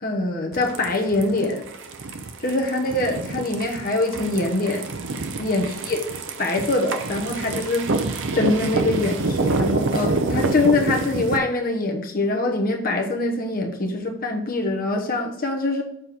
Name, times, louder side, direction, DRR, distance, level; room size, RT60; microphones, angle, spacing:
voice 1, 0.0-1.6 2.4-4.9 5.4-6.0 6.4-7.9 8.3-15.8, left 2 dB, 40° left, 1 dB, 1.1 m, -24 dB
sound 1, 0.5-11.4, right 3 dB, 55° right, 0.6 m, -27 dB
6.7 x 4.2 x 3.6 m, 0.77 s
head